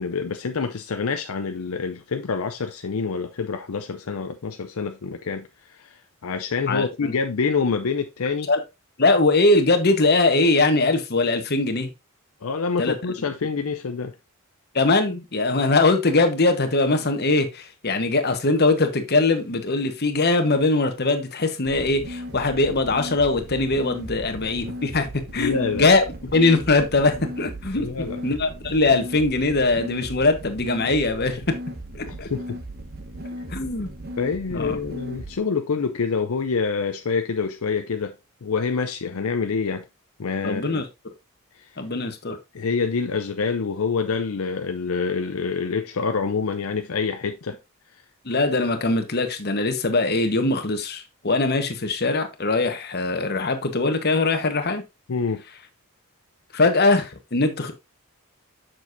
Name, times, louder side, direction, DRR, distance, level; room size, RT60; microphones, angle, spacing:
voice 1, 0.0-8.5 12.4-14.1 25.4-25.9 27.7-28.2 32.1-32.6 34.2-38.1 38.4-39.9 40.2-40.8 41.6-41.7 42.5-47.6 55.1-55.4, left 5 dB, 75° left, 0.6 m, -26 dB
voice 2, 6.7-7.1 8.5-8.6 9.0-11.9 12.8-12.9 14.7-26.0 26.3-27.9 28.2-31.4 31.9-32.3 33.5-33.9 34.5-34.8 40.4-40.8 41.8-42.4 48.2-54.8 56.5-57.7, left 3 dB, 50° left, 1.2 m, -21 dB
sound 1, 21.7-35.4, equal, 45° right, 1.1 m, -37 dB
7.2 x 6.2 x 2.6 m
head